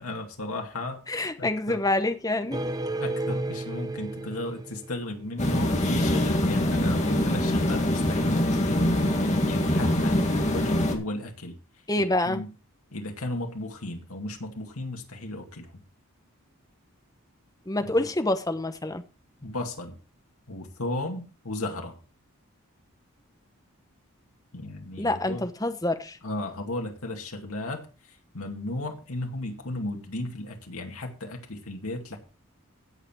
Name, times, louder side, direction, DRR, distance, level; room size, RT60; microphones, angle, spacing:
voice 1, 0.0-1.0 1.4-1.9 3.0-8.9 9.4-11.6 12.0-12.5 12.9-15.8 17.8-17.9 19.4-20.0 20.5-22.0 24.5-25.4 26.2-32.2, left 2 dB, 85° left, 2.3 m, -35 dB
voice 2, 1.1-2.6 11.9-12.4 17.7-19.0 25.0-26.2, left 2 dB, 15° left, 0.9 m, -27 dB
sound 1, 2.5-5.6, right 2 dB, 15° right, 0.6 m, -33 dB
sound 2, 5.4-11.0, left 1 dB, 30° left, 2.0 m, -24 dB
16.5 x 5.9 x 4.5 m
head